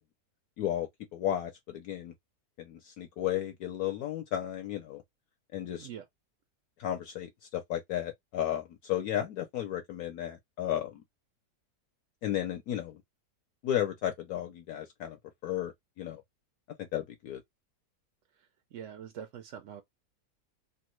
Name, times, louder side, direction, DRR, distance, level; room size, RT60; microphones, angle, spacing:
voice 1, 0.6-2.1 2.6-5.0 5.5-5.9 6.8-11.0 12.2-13.0 13.6-15.2 15.4-15.7 16.0-16.2 16.8-17.4, left 11 dB, 70° left, 1.0 m, -34 dB
voice 2, 18.4-19.8, right 9 dB, 70° right, 0.7 m, -44 dB
3.1 x 2.2 x 3.0 m
omnidirectional pair, 1.8 m